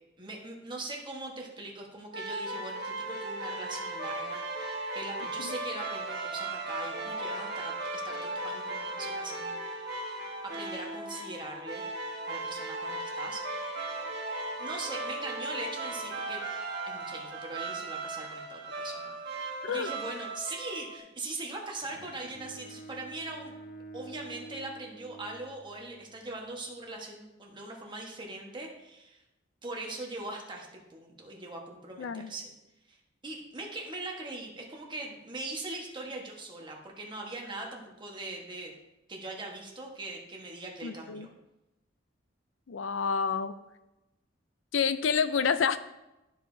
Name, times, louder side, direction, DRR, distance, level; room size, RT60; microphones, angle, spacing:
voice 1, 0.2-9.9 10.4-11.8 12.3-13.8 14.6-16.4 16.9-23.5 23.9-29.2 29.6-32.5 32.9-33.0 33.2-38.7 39.1-41.3, right 2 dB, 25° right, 0 dB, 1.3 m, -41 dB
sound 1, 2.1-21.0, right 2 dB, 60° right, 1.1 m, -37 dB
Bowed string instrument, 21.8-26.0, right 2 dB, 50° left, 1.1 m, -48 dB
voice 2, 32.0-32.3 40.8-41.3 42.7-43.5 44.7-45.8, left 6 dB, 85° left, 13 dB, 0.4 m, -28 dB
13.0 x 4.8 x 2.7 m, 0.96 s
head